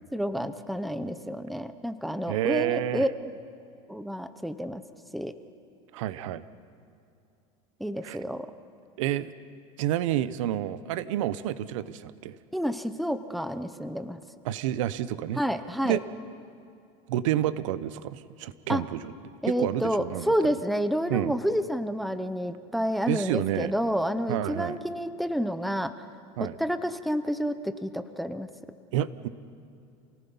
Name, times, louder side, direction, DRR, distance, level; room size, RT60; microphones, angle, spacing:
voice 1, 0.1-3.1 3.9-4.8 5.1-5.3 7.8-8.5 12.5-14.2 15.4-16.0 18.7-18.8 19.4-25.9 26.6-28.5, equal, ahead, 10 dB, 0.7 m, -29 dB
voice 2, 2.3-3.1 5.9-6.4 8.0-8.2 9.0-9.3 9.8-12.4 14.4-15.4 15.8-16.0 17.1-19.1 19.4-20.3 21.1-21.4 23.1-23.7 24.3-24.8 26.4-26.5 28.9-29.3, right 12 dB, 85° right, 15 dB, 0.8 m, -29 dB
28.5 x 18.5 x 5.5 m, 2.5 s
supercardioid pair, 145°, 16 cm